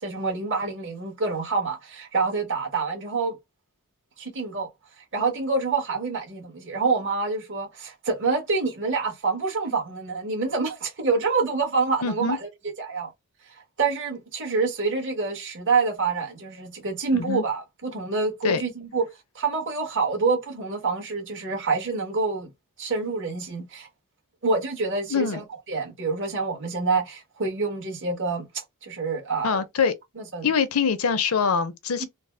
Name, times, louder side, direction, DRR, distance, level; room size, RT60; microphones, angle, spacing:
voice 1, 0.0-3.4 4.2-4.7 5.1-12.5 12.8-13.1 13.8-19.0 19.3-22.5 22.8-23.9 24.4-28.4 28.8-29.6 30.2-30.5 32.0-32.1, right 4 dB, 55° right, 1.5 m, -27 dB
voice 2, 12.0-12.4 17.1-17.4 18.4-18.6 25.1-25.4 29.4-29.9 30.4-32.0, left 6 dB, 70° left, 0.6 m, -24 dB
4.0 x 2.0 x 3.4 m
head